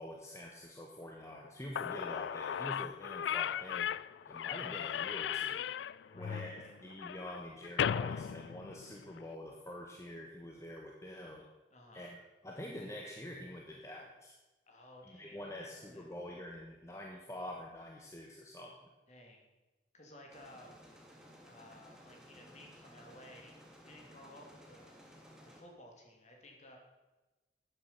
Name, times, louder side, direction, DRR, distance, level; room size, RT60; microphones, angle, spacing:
voice 1, 0.0-3.9 4.3-5.6 6.1-6.5 6.8-11.5 11.9-14.4 15.0-18.8, left 1 dB, 15° left, 0 dB, 1.1 m, -46 dB
Slam / Squeak, 1.4-1.5 1.7-9.2, left 9 dB, 85° left, 0.3 m, -37 dB
voice 2, 6.0-6.8 11.7-12.1 14.7-16.1 19.1-19.5 19.9-20.8 21.4-23.6 23.8-25.0 25.4-26.8, left 1 dB, 40° left, 1 dB, 2.7 m, -56 dB
sound 1, 20.3-25.6, equal, 5° right, 1.9 m, -57 dB
12.5 x 9.4 x 5.7 m, 1.1 s
head